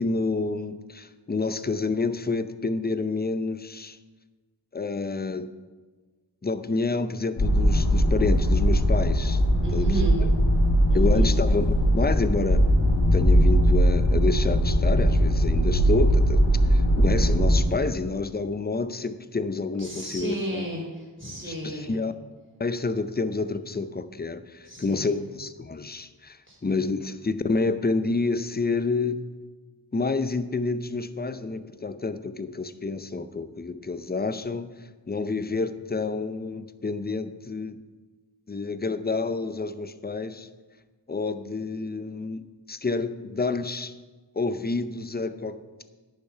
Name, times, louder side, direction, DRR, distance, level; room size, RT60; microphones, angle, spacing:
voice 1, 0.0-4.0 4.7-5.5 6.4-9.4 9.7-9.9 10.9-11.7 11.9-12.7 13.1-16.4 16.7-20.6 21.4-22.1 22.6-29.2 29.9-34.7 35.1-37.8 38.5-40.5 41.1-43.9 44.4-45.6, left 3 dB, 20° left, 12 dB, 0.6 m, -28 dB
sound 1, 7.4-17.6, equal, 85° left, 3.4 m, -20 dB
voice 2, 9.6-10.2 10.9-11.3 19.8-22.0 24.7-25.2 26.5-26.8, equal, 25° right, -3 dB, 3.7 m, -33 dB
10.5 x 7.0 x 5.6 m, 1.3 s
wide cardioid pair, 50°, 46 cm